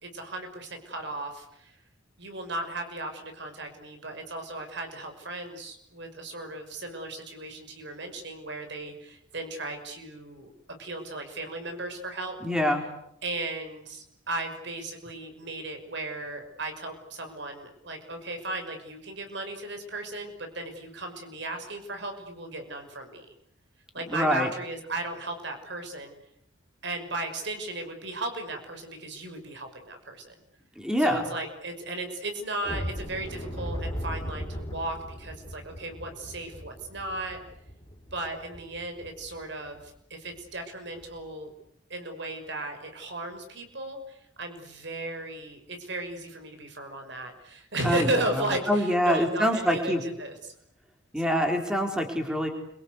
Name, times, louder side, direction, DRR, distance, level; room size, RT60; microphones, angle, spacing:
voice 1, 0.0-1.7 2.2-10.5 10.8-12.4 13.2-23.3 23.9-26.1 26.8-30.3 31.0-37.4 38.1-41.5 41.9-50.5, right 2 dB, 60° right, 5 dB, 5.8 m, -35 dB
voice 2, 12.4-12.8 24.1-24.5 30.8-31.3 47.8-50.0 51.1-52.5, equal, 5° right, 3 dB, 4.2 m, -25 dB
sound 1, 32.6-39.4 39.7-39.9 40.3-40.5 40.9-41.1, equal, 20° left, 5.2 m, -38 dB
30.0 x 24.0 x 8.2 m, 0.77 s
head